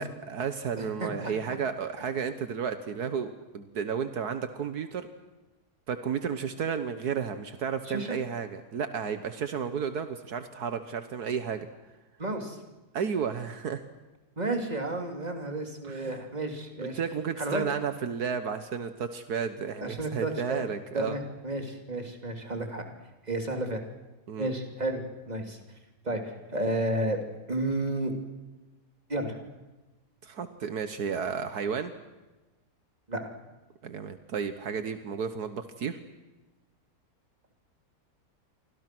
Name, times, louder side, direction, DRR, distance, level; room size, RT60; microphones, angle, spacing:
voice 1, 0.0-5.1 5.9-11.7 12.9-13.8 15.8-16.2 16.8-21.2 24.3-24.5 30.2-31.9 33.8-36.0, right 6 dB, 75° right, 9 dB, 1.7 m, -32 dB
voice 2, 0.8-1.3 7.9-8.2 12.2-12.6 14.4-17.0 17.4-17.6 19.8-20.6 20.9-22.8 23.3-23.8 24.4-25.0 25.3-25.6 26.0-27.2 27.5-28.1 29.1-29.4 33.1-33.2, right 1 dB, 25° right, 4 dB, 3.2 m, -32 dB
29.0 x 25.0 x 6.2 m, 1.1 s
omnidirectional pair, 1.7 m